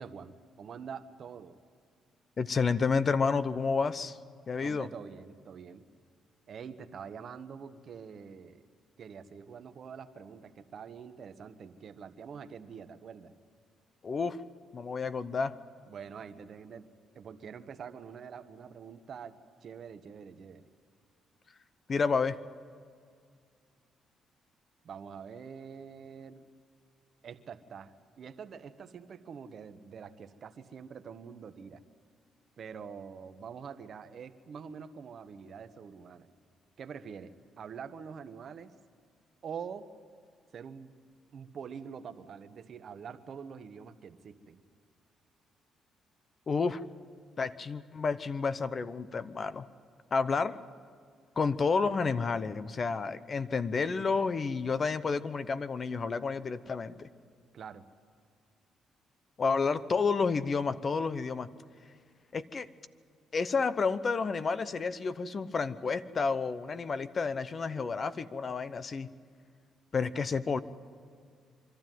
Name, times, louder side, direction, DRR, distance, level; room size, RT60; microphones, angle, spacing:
voice 1, 0.0-1.6 4.6-5.8 6.5-8.6 9.0-13.3 15.9-16.9 17.1-20.7 24.8-26.4 27.2-31.8 32.6-36.3 36.8-38.7 39.4-39.9 40.5-40.9 41.3-44.6 53.0-53.2 57.5-57.8, right 6 dB, 55° right, 10 dB, 1.1 m, -45 dB
voice 2, 2.4-4.2 4.5-4.9 14.0-14.4 14.7-15.5 21.9-22.4 46.5-46.8 47.4-49.6 50.1-50.6 51.4-57.1 59.4-61.5 62.3-62.7 63.3-69.1 69.9-70.6, left 4 dB, 40° left, 14 dB, 0.7 m, -30 dB
24.5 x 13.0 x 9.2 m, 2.1 s
cardioid pair, 90°, 0 cm